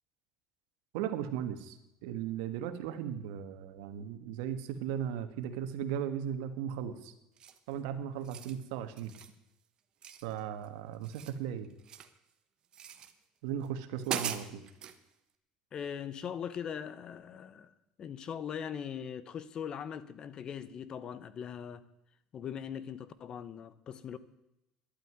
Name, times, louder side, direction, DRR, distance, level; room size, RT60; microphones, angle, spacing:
voice 1, 0.9-7.1 7.7-9.1 10.2-11.7 13.4-14.6, right 9 dB, 85° right, 1.5 m, -37 dB
sound 1, 7.4-7.7 8.1-8.6 9.0-9.4 10.0-10.7 10.9-12.2 12.7-13.1 13.6-13.7 14.0-15.0, right 8 dB, 40° right, 1.3 m, -40 dB
voice 2, 15.7-17.7 18.0-21.8 22.3-24.2, left 8 dB, 40° left, 1.0 m, -40 dB
11.5 x 9.3 x 9.4 m
cardioid pair, 125°, 2 cm